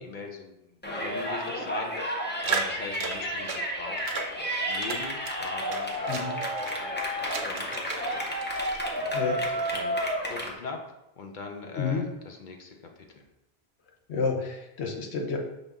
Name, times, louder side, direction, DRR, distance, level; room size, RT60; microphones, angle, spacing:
voice 1, 0.0-10.8 11.2-13.3, left 4 dB, 55° left, 3 dB, 0.6 m, -42 dB
Yell, 0.8-10.5, equal, 15° left, 0.4 m, -31 dB
sound 1, 2.4-3.7 4.0-4.3 4.7-6.8 7.2-8.2 8.4-9.2, right 5 dB, 80° right, 0.9 m, -35 dB
voice 2, 11.8-12.1 14.1-15.4, left 5 dB, 85° left, 2 dB, 1.0 m, -29 dB
5.4 x 2.5 x 3.4 m, 0.89 s
omnidirectional pair, 1.1 m